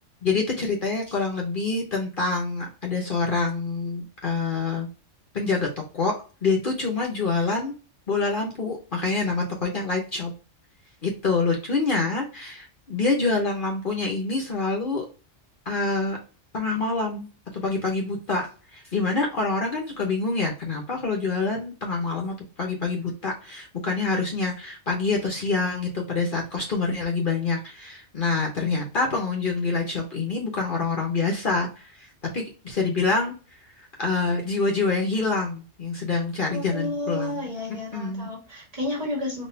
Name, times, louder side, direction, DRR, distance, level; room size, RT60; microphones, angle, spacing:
voice 1, 0.2-4.9 5.3-6.1 6.4-7.7 8.1-10.3 11.0-15.0 15.7-16.2 16.5-18.5 18.7-32.1 32.3-33.3 34.0-37.4 37.9-38.3, left 3 dB, 45° left, 0 dB, 1.0 m, -26 dB
voice 2, 36.5-39.5, left 1 dB, 30° right, -3 dB, 1.5 m, -31 dB
4.1 x 2.8 x 2.7 m, 0.34 s
omnidirectional pair, 1.3 m